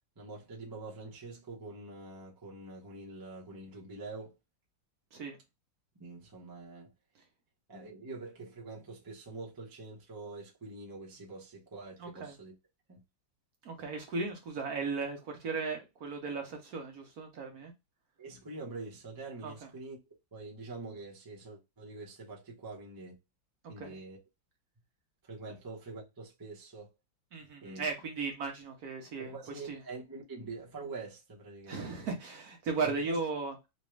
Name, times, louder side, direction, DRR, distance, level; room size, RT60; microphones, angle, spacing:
voice 1, 0.2-4.3 6.0-6.9 7.7-12.5 12.9-13.0 18.2-20.0 20.3-23.2 23.7-24.2 25.2-26.9 27.6-27.8 29.2-32.0 32.8-33.2, right 3 dB, 20° right, 0.6 m, -45 dB
voice 2, 12.0-12.3 13.6-17.7 19.4-19.5 23.8-24.0 27.3-29.8 31.7-33.5, right 4 dB, 60° right, 1.2 m, -36 dB
4.1 x 2.3 x 3.2 m
omnidirectional pair, 2.1 m